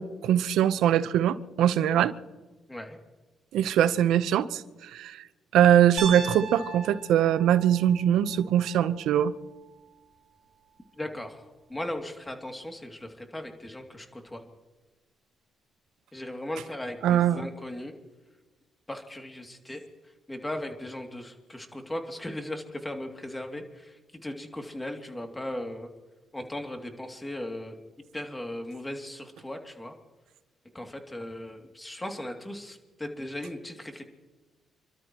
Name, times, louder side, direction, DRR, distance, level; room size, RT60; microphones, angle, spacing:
voice 1, 0.0-2.1 3.5-5.2 5.5-9.3 17.0-17.5, right 10 dB, 85° right, 0.8 m, -22 dB
Piano, 6.0-10.0, right 5 dB, 70° right, 3.2 m, -39 dB
voice 2, 11.0-11.4 11.7-14.4 16.1-17.9 18.9-19.8 20.3-25.9 26.3-27.8 28.1-29.9 30.7-34.0, left 1 dB, 10° left, 2.6 m, -37 dB
30.0 x 13.0 x 3.0 m
cardioid pair, 90°, 0 cm